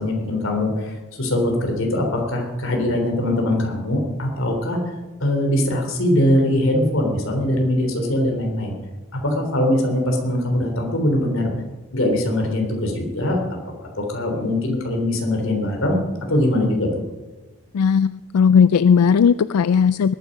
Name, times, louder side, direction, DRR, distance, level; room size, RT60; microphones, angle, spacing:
voice 1, 0.0-4.9 5.2-8.8 9.1-11.5 11.9-13.4 13.8-16.0 16.3-16.9, left 1 dB, 65° left, 2 dB, 3.4 m, -22 dB
voice 2, 17.7-20.1, left 6 dB, 90° left, 15 dB, 0.4 m, -16 dB
20.5 x 9.7 x 5.3 m, 1.2 s
head